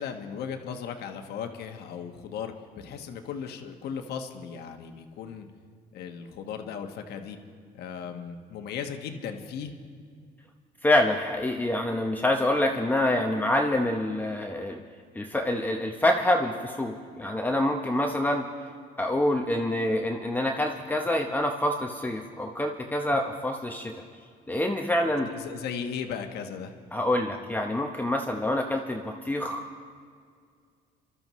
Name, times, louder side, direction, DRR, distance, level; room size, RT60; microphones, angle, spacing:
voice 1, 0.0-5.5 5.9-7.4 7.7-9.7 25.2-26.7, left 7 dB, 75° left, 5 dB, 1.2 m, -36 dB
voice 2, 10.8-14.8 15.1-18.5 19.0-23.9 24.5-25.3 26.9-29.6, left 1 dB, 10° left, 1 dB, 0.8 m, -26 dB
26.5 x 13.0 x 3.1 m, 2.1 s
cardioid pair, 110°, 17 cm